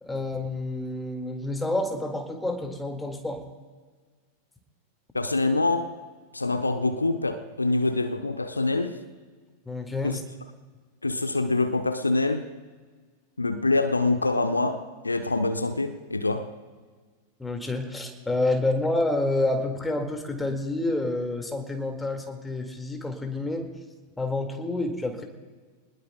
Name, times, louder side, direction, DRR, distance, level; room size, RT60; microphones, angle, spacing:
voice 1, 0.0-3.4 9.7-10.2 17.4-23.7 24.2-25.2, left 2 dB, 10° left, 2.0 m, -28 dB
voice 2, 5.1-5.9 6.3-9.0 10.0-10.2 11.0-12.5 13.4-16.5, left 2 dB, 80° left, 0.8 m, -25 dB
25.5 x 20.0 x 2.3 m
figure-of-eight pair, 90°, 0 cm